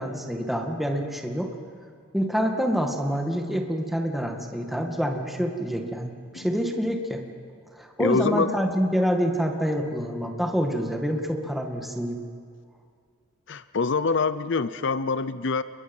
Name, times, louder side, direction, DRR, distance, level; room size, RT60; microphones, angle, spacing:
voice 1, 0.0-1.5 2.1-7.2 7.8-12.2, equal, ahead, 2 dB, 2.0 m, -27 dB
voice 2, 8.0-8.5 13.5-15.6, left 4 dB, 60° left, 14 dB, 0.7 m, -25 dB
28.5 x 22.5 x 5.6 m, 2.1 s
head